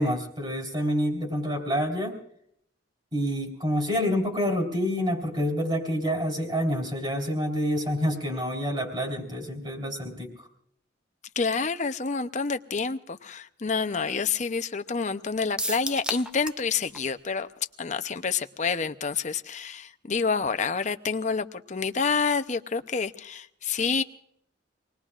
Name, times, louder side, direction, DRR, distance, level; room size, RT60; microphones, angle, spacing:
voice 1, 0.0-2.2 3.1-10.5, equal, 25° right, 3.6 m, -27 dB
voice 2, 11.4-17.5 17.8-24.0, left 5 dB, 40° left, 0.7 m, -28 dB
sound 1, 15.6-16.7 16.9-17.0 17.4-17.5, right 1 dB, 5° right, 0.5 m, -32 dB
26.5 x 20.0 x 2.5 m
head